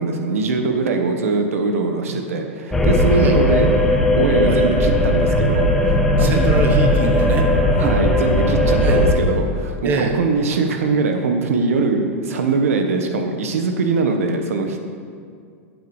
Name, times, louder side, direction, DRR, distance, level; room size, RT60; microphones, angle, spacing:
voice 1, 0.0-6.4 7.8-14.8, right 4 dB, 90° right, 5 dB, 1.2 m, -22 dB
sound 1, 2.7-9.1, left 1 dB, 5° left, 1.0 m, -17 dB
voice 2, 3.1-3.6 4.5-4.7 6.2-7.5 7.8-7.9 8.8-9.0 9.8-10.2, right 4 dB, 25° right, 3 dB, 1.1 m, -23 dB
10.5 x 7.7 x 4.9 m, 2.2 s
supercardioid pair, 150°, 7 cm